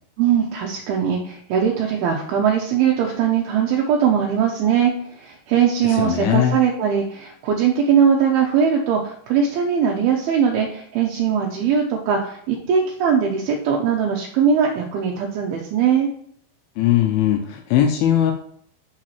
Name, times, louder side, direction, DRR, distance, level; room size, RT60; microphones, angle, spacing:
voice 1, 0.2-16.1, right 7 dB, 80° right, 0 dB, 2.5 m, -20 dB
voice 2, 5.8-6.6 16.8-18.3, left 11 dB, 85° left, 4 dB, 2.2 m, -19 dB
11.5 x 4.8 x 3.1 m, 0.63 s
omnidirectional pair, 4.9 m